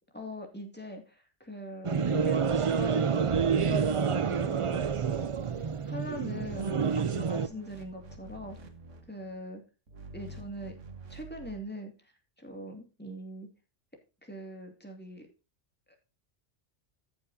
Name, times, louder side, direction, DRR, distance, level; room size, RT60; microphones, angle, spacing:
voice 1, 0.1-4.8 5.9-8.6 9.1-9.6 10.1-10.8 11.1-11.9 12.4-13.5 14.2-15.2, equal, 10° left, 2 dB, 2.4 m, -41 dB
sound 1, 1.8-7.5, right 6 dB, 55° right, 0.3 m, -28 dB
sound 2, 4.7-6.1 6.4-9.3 9.9-11.6, right 2 dB, 85° right, 1.8 m, -48 dB
14.5 x 7.3 x 2.7 m, 0.31 s
omnidirectional pair, 1.2 m